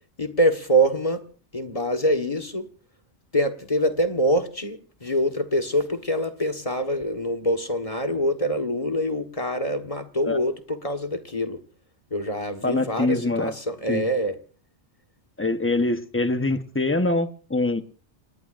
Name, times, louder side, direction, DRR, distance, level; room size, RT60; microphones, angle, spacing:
voice 1, 0.2-1.2 1.5-2.7 3.3-11.6 12.1-14.4, equal, 30° left, 1.5 m, -25 dB
voice 2, 12.6-13.5 13.9-14.1 15.4-17.8, left 2 dB, 10° left, 0.9 m, -24 dB
28.5 x 20.0 x 2.5 m
omnidirectional pair, 1.1 m